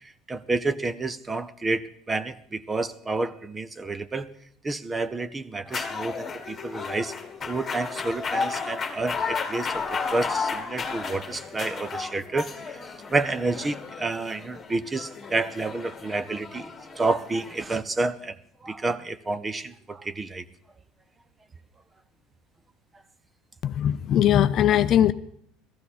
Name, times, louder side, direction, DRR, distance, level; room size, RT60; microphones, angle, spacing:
voice 1, 0.3-4.3 4.6-7.1 7.5-12.8 13.1-18.4 18.6-20.4, right 3 dB, 15° right, 15 dB, 0.6 m, -29 dB
sound 1, 5.7-17.6, left 5 dB, 20° left, 1.6 m, -33 dB
voice 2, 23.6-25.1, left 11 dB, 40° left, 13 dB, 0.5 m, -20 dB
17.0 x 14.0 x 4.2 m, 0.68 s
cardioid pair, 150°, 0 cm